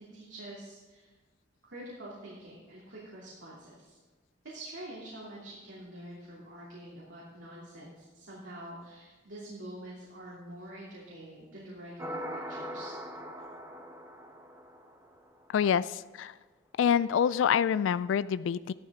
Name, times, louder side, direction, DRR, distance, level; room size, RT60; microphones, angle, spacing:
voice 1, 0.1-1.1 1.6-4.0 4.4-12.9, right 1 dB, 75° right, -6 dB, 2.9 m, -46 dB
sound 1, 12.0-15.4, equal, 15° right, 1.1 m, -41 dB
voice 2, 15.5-16.3 16.8-18.7, left 8 dB, 85° left, 16 dB, 0.3 m, -26 dB
14.0 x 12.0 x 3.7 m, 1.3 s
head